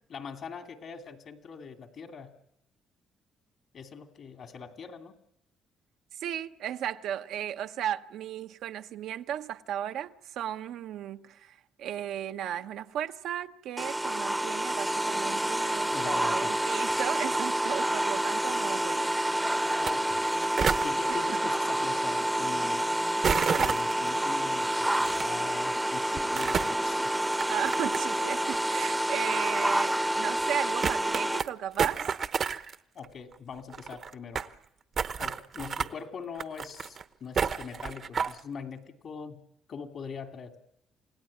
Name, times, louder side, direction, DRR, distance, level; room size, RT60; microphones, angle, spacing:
voice 1, 0.1-2.3 3.7-5.2 15.9-16.5 19.8-20.2 20.8-22.9 23.5-27.2 32.9-34.4 35.2-39.4 39.7-40.6, left 6 dB, 60° left, 2.7 m, -42 dB
voice 2, 6.2-19.3 21.1-21.4 27.5-32.1, right 10 dB, 75° right, 0.9 m, -35 dB
sound 1, 13.8-31.4, right 1 dB, 10° right, 0.8 m, -28 dB
sound 2, 19.7-19.9 20.2-20.9 23.2-24.1 25.1-25.2 26.2-26.8 27.3-28.2 28.5-28.6 29.5-29.6 30.0-30.1 30.4-30.5 30.8-31.5 31.8-32.8 33.0-33.1 33.3-33.4 33.6-34.5 35.0-35.9 36.4-37.0 37.4-38.4, right 6 dB, 50° right, 0.9 m, -30 dB
28.5 x 17.0 x 8.6 m
supercardioid pair, 80°, 0 cm